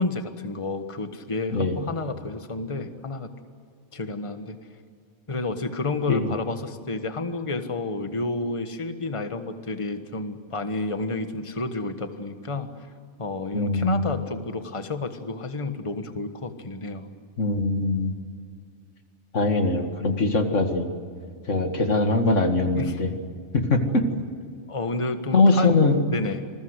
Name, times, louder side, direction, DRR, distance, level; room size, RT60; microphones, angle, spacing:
voice 1, 0.0-3.3 3.9-4.6 5.3-12.9 13.2-17.1 22.7-23.2 24.7-25.7 26.1-26.5, left 2 dB, 25° left, 7 dB, 1.5 m, -30 dB
voice 2, 1.5-1.8 6.1-6.3 13.5-14.1 17.4-18.1 19.3-20.9 21.5-23.1 23.5-24.0 25.3-26.0, left 3 dB, 85° left, 6 dB, 2.4 m, -22 dB
28.0 x 21.0 x 8.1 m, 2.1 s
omnidirectional pair, 1.2 m